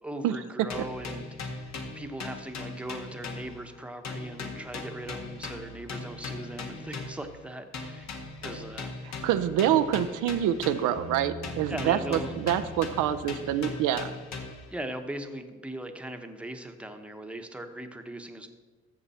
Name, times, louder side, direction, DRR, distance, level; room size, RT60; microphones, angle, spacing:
voice 1, 0.0-8.1 8.4-8.9 11.7-12.4 14.7-18.5, right 1 dB, 5° right, 5 dB, 1.0 m, -39 dB
sound 1, 0.7-3.8 4.0-7.3 7.7-11.1 11.4-14.7, left 3 dB, 65° left, 1.6 m, -39 dB
voice 2, 9.2-14.1, right 11 dB, 90° right, 10 dB, 0.6 m, -26 dB
Bass guitar, 11.0-14.4, left 1 dB, 35° left, 1.1 m, -44 dB
13.5 x 6.9 x 4.3 m, 1.3 s
cardioid pair, 90°, 30 cm